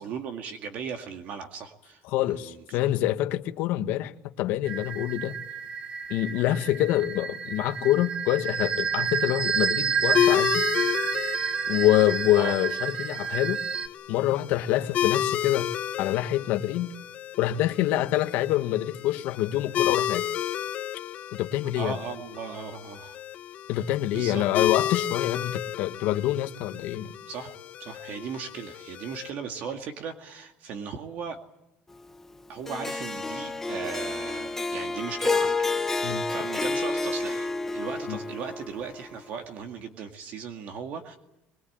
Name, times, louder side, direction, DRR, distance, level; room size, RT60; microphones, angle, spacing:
voice 1, 0.0-2.6 12.4-12.5 21.8-23.2 24.1-24.4 27.3-31.4 32.5-41.2, right 6 dB, 50° right, 2.1 m, -37 dB
voice 2, 2.1-5.4 6.1-10.6 11.7-13.6 14.1-15.7 16.0-16.9 17.4-20.2 21.3-22.0 23.7-27.1 36.0-36.2 38.1-38.2, left 14 dB, 65° left, 1.4 m, -26 dB
sound 1, 4.7-13.9, right 7 dB, 30° right, 0.9 m, -30 dB
sound 2, 10.1-29.3, left 11 dB, 40° left, 1.1 m, -31 dB
Harp, 32.7-39.0, left 3 dB, 10° left, 0.8 m, -29 dB
23.0 x 22.0 x 8.8 m
cardioid pair, 170°, 4 cm